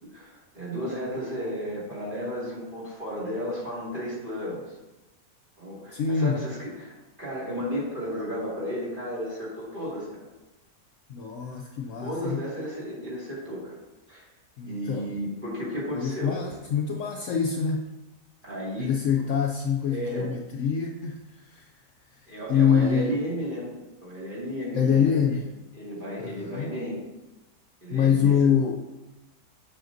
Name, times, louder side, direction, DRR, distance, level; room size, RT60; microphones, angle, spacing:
voice 1, 0.0-4.8 5.6-10.2 12.0-13.7 14.1-14.2 14.6-16.3 18.4-18.9 19.2-19.3 19.9-20.3 22.3-23.7 24.0-25.4 25.7-27.0 27.8-28.5, equal, 35° right, -6 dB, 2.3 m, -33 dB
voice 2, 5.9-6.4 11.1-12.4 14.6-15.1 15.9-17.9 18.8-21.7 22.5-23.1 24.7-25.5 26.2-26.7 27.9-28.8, left 7 dB, 70° left, 2 dB, 0.8 m, -25 dB
7.6 x 6.4 x 2.6 m, 1.1 s
omnidirectional pair, 1.6 m